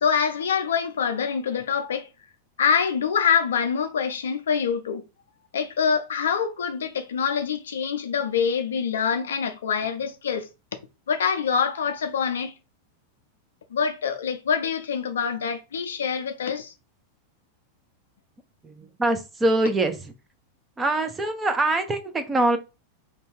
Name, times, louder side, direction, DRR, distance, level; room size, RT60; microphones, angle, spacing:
voice 1, 0.0-2.1 2.6-5.0 5.5-10.5 11.1-12.5 13.7-16.7, left 6 dB, 70° left, 0.5 m, -25 dB
voice 2, 18.6-20.1 20.8-22.6, right 2 dB, 15° right, 0.6 m, -24 dB
2.6 x 2.3 x 3.5 m
figure-of-eight pair, 95°, 0 cm